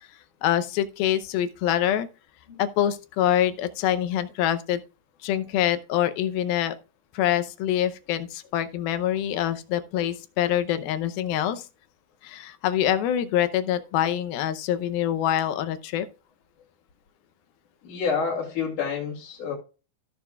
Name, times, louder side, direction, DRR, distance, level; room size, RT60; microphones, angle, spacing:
voice 1, 0.4-2.1 2.6-4.8 5.2-6.7 7.1-11.6 12.2-16.1, left 11 dB, 90° left, 2.7 m, -25 dB
voice 2, 17.8-19.5, left 6 dB, 60° left, 3.7 m, -28 dB
15.0 x 6.8 x 2.3 m
omnidirectional pair, 4.2 m